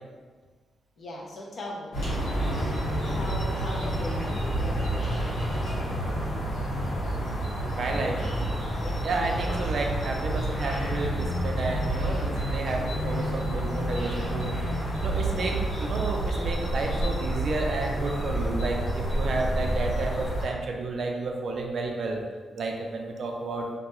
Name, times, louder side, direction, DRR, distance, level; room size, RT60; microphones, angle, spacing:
voice 1, 1.0-2.2 3.1-4.1 4.4-5.6 5.9-6.2 8.8-9.0 9.3-9.7, left 1 dB, 50° left, -2 dB, 0.5 m, -40 dB
sound 1, 1.9-20.4, right 1 dB, 85° left, 1.4 m, -29 dB
voice 2, 7.6-8.2 9.0-14.5 15.0-22.2 22.5-23.7, right 3 dB, 55° right, 1 dB, 0.3 m, -31 dB
2.3 x 2.1 x 2.9 m, 1.4 s
wide cardioid pair, 150°, 0 cm